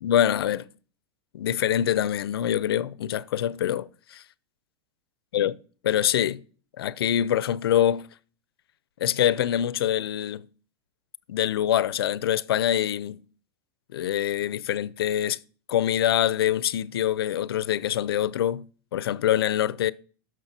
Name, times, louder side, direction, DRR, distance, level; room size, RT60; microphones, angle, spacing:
voice 1, 0.0-0.7 1.3-4.2 5.3-5.6 5.8-6.4 6.8-8.1 9.0-10.5 11.3-13.2 13.9-15.4 15.7-18.6 18.9-19.9, left 11 dB, 80° left, 0.5 m, -25 dB
14.0 x 6.3 x 2.8 m
hypercardioid pair, 115°, 13 cm